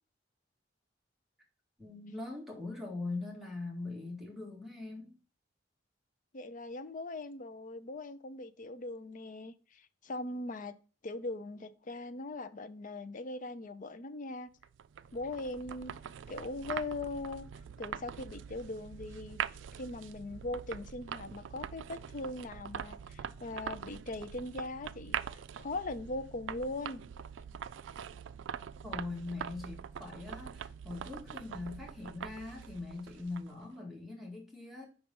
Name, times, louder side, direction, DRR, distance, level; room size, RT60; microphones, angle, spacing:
voice 1, 1.8-5.2 28.8-34.9, left 3 dB, ahead, 1.9 m, -42 dB
voice 2, 6.3-10.7 11.0-14.5 15.1-16.0 16.3-17.4 17.8-19.4 19.7-27.0, left 2 dB, 45° left, 0.5 m, -40 dB
sound 1, 14.6-33.7, right 8 dB, 75° right, 0.3 m, -43 dB
5.3 x 4.6 x 5.3 m
head